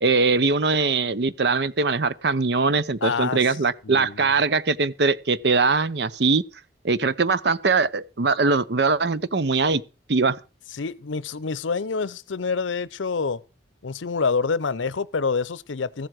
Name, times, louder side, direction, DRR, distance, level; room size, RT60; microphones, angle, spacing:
voice 1, 0.0-6.4 6.8-9.8 10.1-10.4, right 4 dB, 60° right, 0.7 m, -21 dB
voice 2, 3.0-3.4 3.8-4.3 10.7-13.4 13.8-16.1, left 5 dB, 85° left, 0.7 m, -27 dB
15.0 x 7.6 x 6.2 m
head